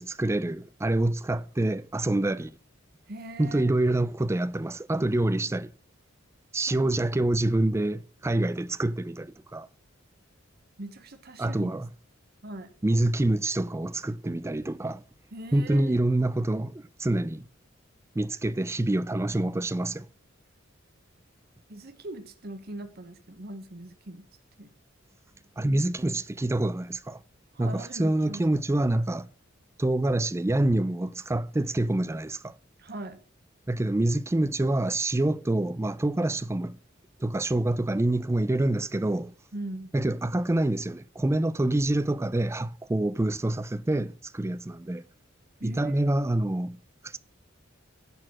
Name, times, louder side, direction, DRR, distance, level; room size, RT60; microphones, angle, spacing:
voice 1, 0.0-2.5 3.4-5.7 6.5-9.7 11.4-11.9 12.8-15.0 15.5-17.4 18.2-20.1 25.6-27.2 27.6-29.3 29.8-32.5 33.7-36.8 37.2-39.3 39.9-45.0 45.6-46.8 47.0-47.2, right 1 dB, 15° right, 0.4 m, -26 dB
voice 2, 3.1-3.7 6.7-6.9 10.8-11.7 12.4-12.7 15.3-16.0 21.7-24.2 24.6-24.7 27.5-28.4 32.8-33.2 39.5-39.9 45.6-46.2, right 1 dB, 50° right, 1.1 m, -41 dB
11.0 x 4.1 x 7.4 m
head